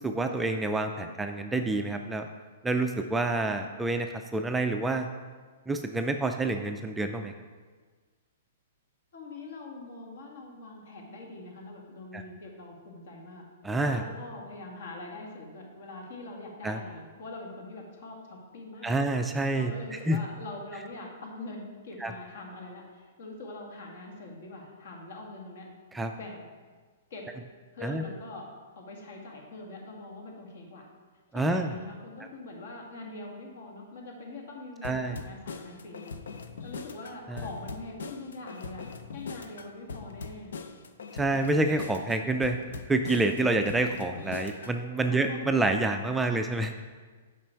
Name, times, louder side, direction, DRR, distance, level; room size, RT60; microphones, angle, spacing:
voice 1, 0.0-2.3 2.6-5.1 5.7-7.3 12.1-12.2 13.6-14.0 16.6-16.8 18.8-20.2 22.0-22.1 25.9-26.1 27.8-28.0 31.3-31.7 34.8-35.2 37.3-37.4 41.1-42.6 42.9-46.8, right 2 dB, 5° right, 5 dB, 0.3 m, -28 dB
voice 2, 9.1-13.4 13.8-18.9 19.5-25.7 26.1-26.5 27.1-27.3 27.7-28.5 28.8-30.8 31.3-36.1 36.6-38.9 39.1-40.5 45.1-45.5, left 2 dB, 65° left, 0 dB, 1.9 m, -43 dB
sound 1, 34.8-44.8, left 4 dB, 85° left, 0.6 m, -41 dB
7.5 x 5.2 x 4.5 m, 1.5 s
hypercardioid pair, 155°, 0 cm